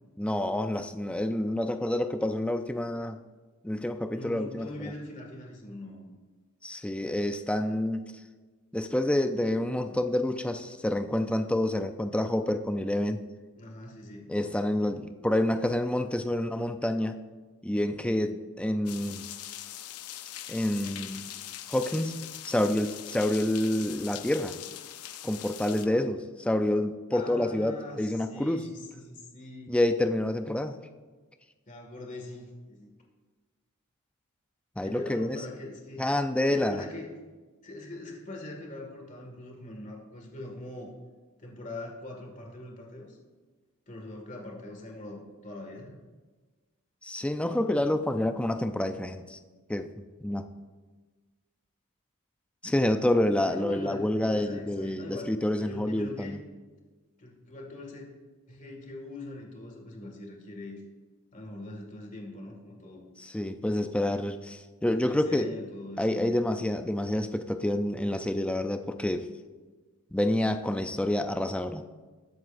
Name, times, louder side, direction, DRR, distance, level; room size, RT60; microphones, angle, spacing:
voice 1, 0.2-3.2 3.6-4.7 6.6-8.1 8.7-13.2 14.3-17.2 17.6-19.2 20.5-21.3 21.7-24.6 25.2-28.7 29.7-30.8 34.8-35.4 36.0-36.8 47.0-49.4 49.7-50.5 52.6-56.4 63.2-65.5 66.0-69.3 70.1-71.8, left 1 dB, 5° left, 7 dB, 0.5 m, -28 dB
voice 2, 4.1-6.1 13.6-14.3 25.6-26.1 27.1-29.8 31.7-33.0 34.8-36.1 36.5-37.1 37.6-40.9 41.4-43.2 43.9-46.0 53.5-56.4 57.2-58.1 58.5-60.8 61.3-63.0 63.7-64.0 64.8-66.4, left 2 dB, 35° left, 1 dB, 2.0 m, -42 dB
sound 1, 18.9-25.9, left 12 dB, 85° left, 0.6 m, -42 dB
20.5 x 7.8 x 2.6 m, 1.3 s
head